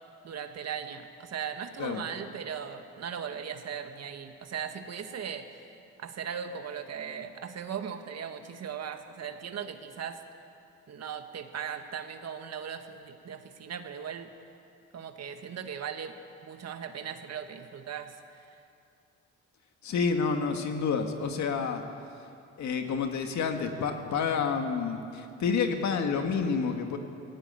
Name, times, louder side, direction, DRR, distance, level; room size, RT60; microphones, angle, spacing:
voice 1, 0.2-5.7 6.0-10.2 10.9-14.3 14.9-16.2 16.4-18.4, right 7 dB, 55° right, 7 dB, 1.7 m, -38 dB
voice 2, 19.8-21.8 22.6-27.0, left 5 dB, 70° left, 5 dB, 2.0 m, -29 dB
18.5 x 16.5 x 9.1 m, 2.6 s
cardioid pair, 90°, 30 cm